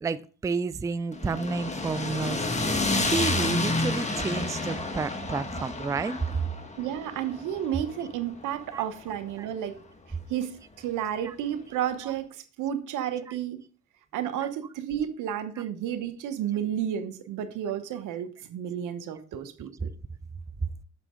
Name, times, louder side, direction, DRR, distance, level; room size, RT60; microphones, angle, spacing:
voice 1, 0.0-6.2 8.7-8.8 9.4-9.5 11.2-11.3 13.3-13.4, right 4 dB, 10° right, 0.3 m, -31 dB
sound 1, 1.1-9.4, left 2 dB, 25° left, 1.4 m, -30 dB
voice 2, 6.8-9.8 10.3-13.6 14.1-19.9, right 10 dB, 90° right, 1.0 m, -32 dB
7.4 x 6.0 x 3.7 m
cardioid pair, 90°, 30 cm